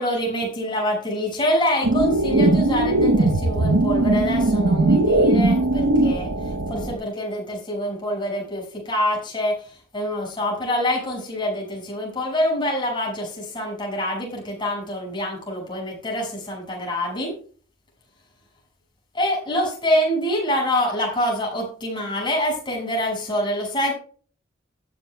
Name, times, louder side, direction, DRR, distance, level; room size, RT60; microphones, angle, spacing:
voice 1, 0.0-6.3 6.7-17.3 19.1-23.9, equal, 25° left, 0 dB, 6.2 m, -25 dB
sound 1, 1.8-6.9, right 2 dB, 85° right, 0.9 m, -19 dB
14.5 x 10.5 x 2.3 m, 0.41 s
head